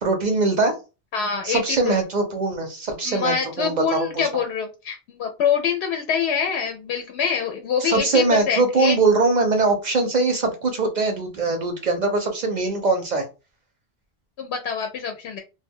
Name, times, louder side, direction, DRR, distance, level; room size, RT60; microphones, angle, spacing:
voice 1, 0.0-0.7 1.4-4.3 7.8-13.3, right 3 dB, 55° right, 4 dB, 0.6 m, -22 dB
voice 2, 1.1-2.0 3.0-8.9 14.4-15.4, left 6 dB, 85° left, 5 dB, 0.8 m, -25 dB
2.1 x 2.1 x 3.5 m, 0.29 s
omnidirectional pair, 1.1 m